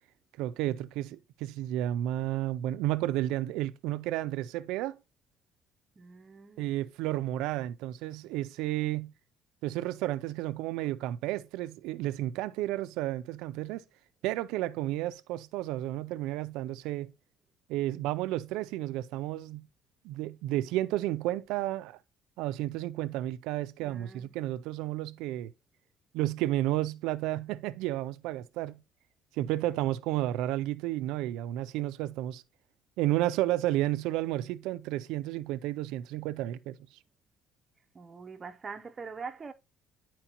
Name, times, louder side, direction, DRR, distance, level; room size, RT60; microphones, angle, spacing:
voice 1, 0.4-5.0 6.6-9.1 9.6-13.8 14.2-17.1 17.7-19.6 20.0-22.0 22.4-25.5 26.1-28.8 29.3-32.4 33.0-36.8, right 15 dB, 90° right, 0.4 m, -32 dB
voice 2, 6.0-6.8 23.8-24.3 37.9-39.5, right 5 dB, 25° right, 0.5 m, -43 dB
10.0 x 4.5 x 2.9 m
cardioid pair, 160°, 0 cm